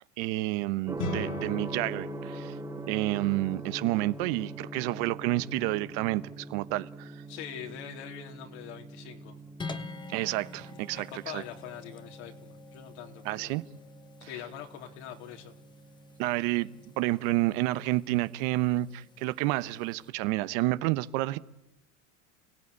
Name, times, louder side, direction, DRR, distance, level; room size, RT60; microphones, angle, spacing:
voice 1, 0.2-2.6 2.9-7.2 10.1-11.4 13.2-13.6 16.2-16.7 17.0-21.4, right 18 dB, 55° right, 1.0 m, -29 dB
Gong, 0.9-18.7, right 2 dB, 10° right, 1.2 m, -44 dB
sound 1, 1.0-10.4, left 3 dB, 50° left, 2.8 m, -44 dB
voice 2, 7.3-9.4 10.6-13.6 14.2-15.5 16.5-16.7, left 9 dB, 70° left, 3.7 m, -44 dB
sound 2, 9.6-20.1, left 4 dB, 10° left, 1.2 m, -48 dB
29.5 x 16.5 x 9.7 m
supercardioid pair, 130°, 35 cm